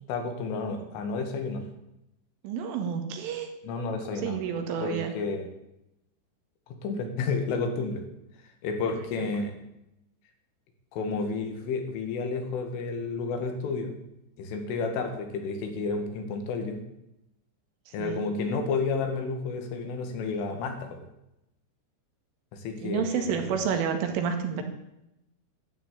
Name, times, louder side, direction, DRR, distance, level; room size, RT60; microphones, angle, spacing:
voice 1, 0.1-1.6 3.6-4.4 4.8-5.5 6.7-8.0 8.6-9.5 10.9-14.0 14.4-16.8 17.9-21.0 22.5-23.3, left 4 dB, 80° left, 5 dB, 4.7 m, -31 dB
voice 2, 2.4-3.5 4.1-5.1 9.2-9.3 17.9-18.3 22.8-24.6, right 7 dB, 85° right, 5 dB, 4.5 m, -30 dB
12.5 x 12.5 x 8.7 m, 0.86 s
omnidirectional pair, 5.6 m